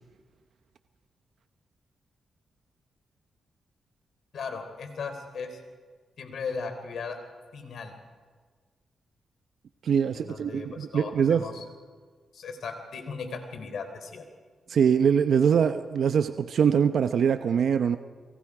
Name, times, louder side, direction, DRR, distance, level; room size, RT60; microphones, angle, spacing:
voice 1, 4.3-5.6 6.2-7.2 7.5-7.9 10.1-11.6 12.3-14.2, left 5 dB, 75° left, 7 dB, 3.9 m, -37 dB
voice 2, 9.8-11.5 14.7-18.0, right 7 dB, 75° right, 9 dB, 0.8 m, -23 dB
29.5 x 22.5 x 4.9 m, 1.6 s
cardioid pair, 75°, 0 cm